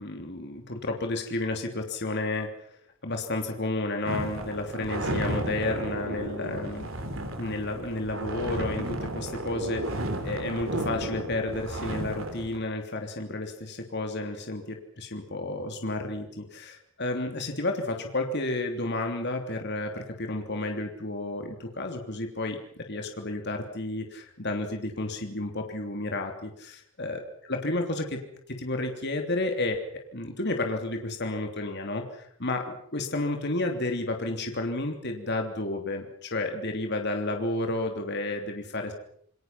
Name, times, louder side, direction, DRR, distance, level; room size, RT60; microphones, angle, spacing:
voice 1, 0.0-2.5 3.0-6.9 7.4-27.2 27.5-28.2 28.5-38.9, left 2 dB, 50° left, 3 dB, 3.1 m, -31 dB
sound 1, 4.1-12.6, right 1 dB, 65° right, 3.5 m, -33 dB
28.0 x 21.5 x 5.9 m, 0.64 s
head